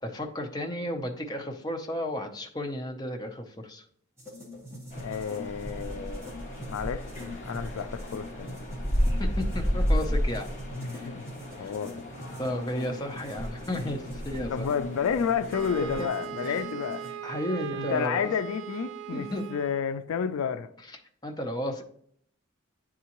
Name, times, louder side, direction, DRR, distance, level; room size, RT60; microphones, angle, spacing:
voice 1, 0.0-3.8 9.2-10.5 10.9-11.1 11.6-11.7 12.4-14.7 15.8-16.1 16.4-16.6 17.2-18.3 19.1-19.5 21.2-21.8, left 1 dB, 20° left, 0.6 m, -33 dB
sound 1, 4.2-17.1, left 2 dB, 10° right, 1.2 m, -43 dB
sound 2, 4.9-16.1, equal, 35° left, 1.2 m, -32 dB
voice 2, 5.0-6.3 6.7-8.6 10.7-11.2 11.6-11.9 14.5-17.0 17.7-20.7, left 7 dB, 80° left, 0.4 m, -31 dB
Wind instrument woodwind instrument, 15.5-19.9, right 10 dB, 55° right, 0.3 m, -39 dB
9.2 x 3.6 x 2.9 m
head